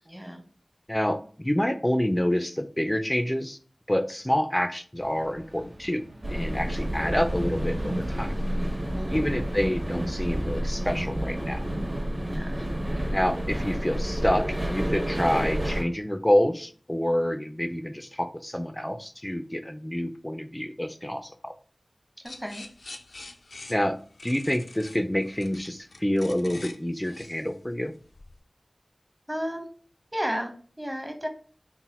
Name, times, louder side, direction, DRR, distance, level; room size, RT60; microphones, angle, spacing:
voice 1, 0.0-0.4 8.9-9.4 12.3-12.7 12.9-13.1 22.2-22.7 29.3-29.7 30.1-31.3, equal, 15° right, 4 dB, 0.9 m, -34 dB
voice 2, 0.9-3.6 3.9-6.0 6.3-8.3 9.1-11.6 13.1-21.5 23.7-27.9, equal, 15° left, 8 dB, 0.4 m, -27 dB
sound 1, 5.0-10.5, right 1 dB, 75° right, 0.8 m, -43 dB
sound 2, 6.2-15.8, equal, 45° right, 1.4 m, -29 dB
sound 3, 22.3-28.4, left 2 dB, 90° left, 0.4 m, -45 dB
4.0 x 2.0 x 4.1 m, 0.43 s
wide cardioid pair, 45°, 0 cm